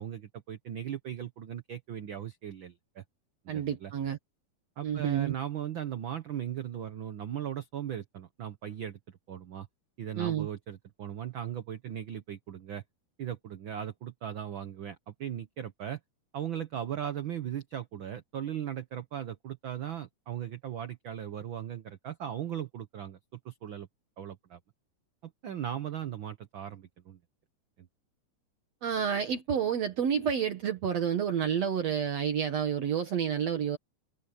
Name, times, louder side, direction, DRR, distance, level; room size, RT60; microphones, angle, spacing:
voice 1, 0.0-3.0 3.4-3.9 4.8-9.7 10.0-12.8 13.2-16.0 16.3-23.9 24.2-24.6 25.2-27.2 27.8-27.9, right 10 dB, 90° right, 1.0 m, -38 dB
voice 2, 3.5-4.2 4.8-5.3 10.2-10.5 28.8-33.8, right 8 dB, 60° right, 2.4 m, -29 dB
omnidirectional pair, 3.7 m